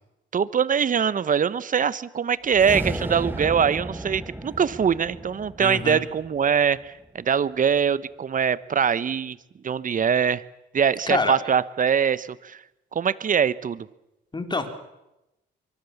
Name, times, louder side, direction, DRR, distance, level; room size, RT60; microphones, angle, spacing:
voice 1, 0.3-9.4 9.6-10.4 10.7-12.6 12.9-13.9, right 7 dB, 40° right, 17 dB, 1.1 m, -23 dB
sound 1, 2.4-6.8, right 1 dB, 10° right, 2.0 m, -34 dB
voice 2, 5.6-6.0 11.1-11.4 14.3-14.7, left 3 dB, 20° left, 7 dB, 3.7 m, -26 dB
24.0 x 23.5 x 7.2 m, 0.93 s
cardioid pair, 90°, 20 cm